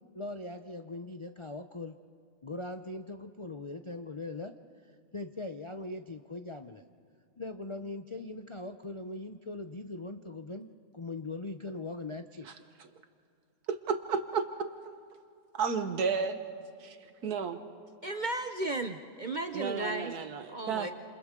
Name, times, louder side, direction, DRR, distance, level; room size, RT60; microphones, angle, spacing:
voice 1, 0.1-1.9 2.4-4.5 5.1-6.8 7.4-10.7 10.9-12.5, left 2 dB, 55° left, 6 dB, 0.3 m, -40 dB
voice 2, 13.7-14.5 15.5-16.4 16.8-17.6 19.5-20.9, right 6 dB, 70° right, 8 dB, 1.7 m, -32 dB
voice 3, 18.0-20.1 20.5-20.9, right 2 dB, 45° right, 6 dB, 0.6 m, -34 dB
30.0 x 28.5 x 3.8 m, 2.4 s
omnidirectional pair, 1.7 m